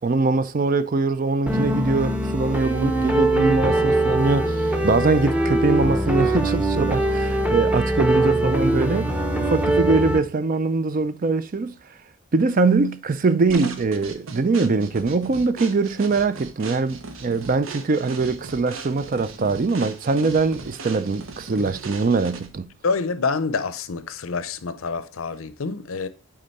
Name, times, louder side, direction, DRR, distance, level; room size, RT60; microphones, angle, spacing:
voice 1, 0.0-11.7 12.3-22.7, right 3 dB, 40° right, 0.4 m, -22 dB
sound 1, 1.5-10.2, right 1 dB, 5° right, 0.8 m, -22 dB
sound 2, 13.5-22.6, right 3 dB, 75° right, 1.0 m, -38 dB
voice 2, 22.8-26.1, left 4 dB, 80° left, 0.6 m, -27 dB
8.7 x 3.8 x 4.1 m
head